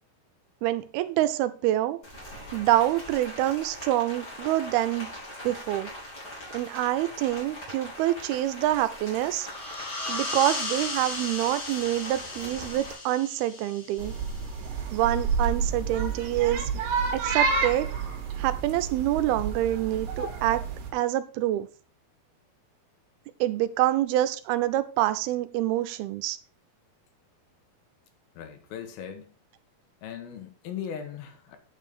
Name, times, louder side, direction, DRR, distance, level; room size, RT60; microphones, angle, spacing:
voice 1, 0.6-2.0 2.5-5.1 5.4-5.9 6.5-9.5 10.1-14.1 14.9-16.7 17.1-17.9 18.4-20.6 20.9-21.7 23.4-26.4, right 14 dB, 85° right, 2.6 m, -26 dB
Rain, 2.0-12.9, left 1 dB, 25° left, 4.6 m, -42 dB
sound 1, 9.3-14.7, left 2 dB, 45° left, 3.1 m, -36 dB
sound 2, 14.0-20.9, right 5 dB, 65° right, 3.0 m, -29 dB
voice 2, 28.4-29.3 30.0-31.6, left 8 dB, 80° left, 3.0 m, -38 dB
9.1 x 5.7 x 5.0 m
omnidirectional pair, 4.3 m